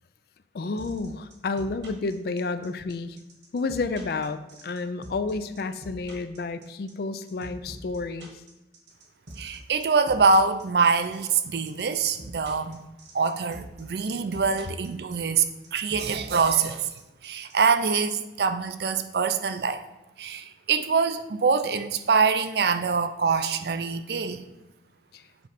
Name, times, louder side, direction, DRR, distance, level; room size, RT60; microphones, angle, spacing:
voice 1, 0.5-3.2 3.5-8.3 25.1-25.2, left 3 dB, 55° left, 11 dB, 0.4 m, -30 dB
sound 1, 0.8-17.5, right 1 dB, 75° right, 1.5 m, -44 dB
voice 2, 9.4-12.8 13.1-15.5 15.7-16.9 17.2-19.8 20.2-24.4, right 5 dB, 60° right, 10 dB, 0.5 m, -24 dB
7.9 x 3.1 x 5.0 m, 0.97 s
head